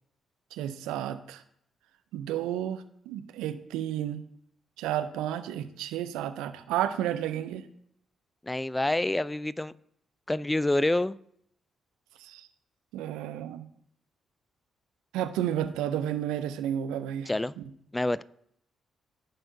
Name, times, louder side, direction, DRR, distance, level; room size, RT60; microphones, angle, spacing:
voice 1, 0.5-1.4 2.1-4.2 4.8-7.7 12.2-12.5 12.9-13.6 15.1-17.6, right 11 dB, 75° right, 11 dB, 0.5 m, -32 dB
voice 2, 8.4-9.7 10.3-11.2 17.3-17.5 17.9-18.2, left 1 dB, 15° left, 20 dB, 0.3 m, -27 dB
15.0 x 5.5 x 2.7 m, 0.71 s
hypercardioid pair, 40°, 0 cm